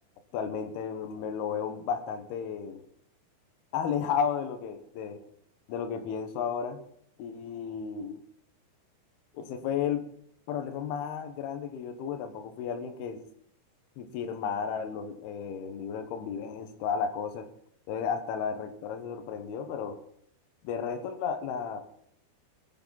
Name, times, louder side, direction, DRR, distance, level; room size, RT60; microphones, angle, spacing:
voice 1, 0.3-2.8 3.7-5.2 5.7-6.9 7.2-8.2 9.3-10.0 10.5-13.2 14.0-17.5 17.9-20.0 20.6-21.8, left 7 dB, 70° left, 6 dB, 2.7 m, -33 dB
22.0 x 9.5 x 4.0 m, 0.68 s
omnidirectional pair, 5.8 m